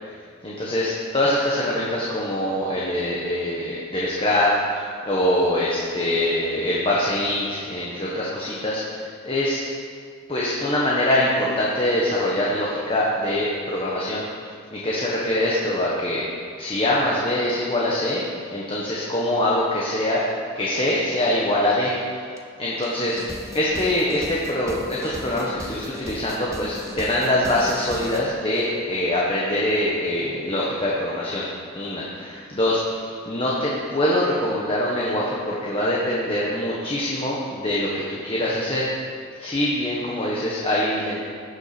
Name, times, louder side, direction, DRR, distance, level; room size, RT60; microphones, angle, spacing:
voice 1, 0.4-9.6 10.3-14.2 14.7-16.2 16.6-18.2 18.5-20.2 20.5-22.3 22.6-23.2 23.5-31.4 31.7-38.9 39.4-41.2, left 1 dB, 25° left, -5 dB, 1.4 m, -24 dB
sound 1, 22.4-22.5 22.8-28.2, right 1 dB, 15° right, 0.9 m, -38 dB
15.5 x 7.1 x 6.1 m, 2.2 s
head